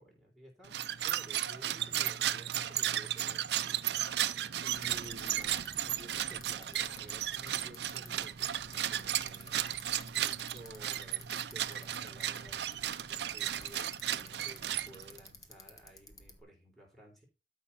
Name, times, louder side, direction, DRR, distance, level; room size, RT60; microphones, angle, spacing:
voice 1, 0.0-3.8 4.6-17.2, right 1 dB, ahead, -2 dB, 3.6 m, -54 dB
sound 1, 0.6-15.3, right 11 dB, 70° right, 0.5 m, -35 dB
Bicycle, 4.7-16.4, left 3 dB, 20° left, 1.2 m, -54 dB
12.5 x 5.6 x 4.1 m, 0.30 s
head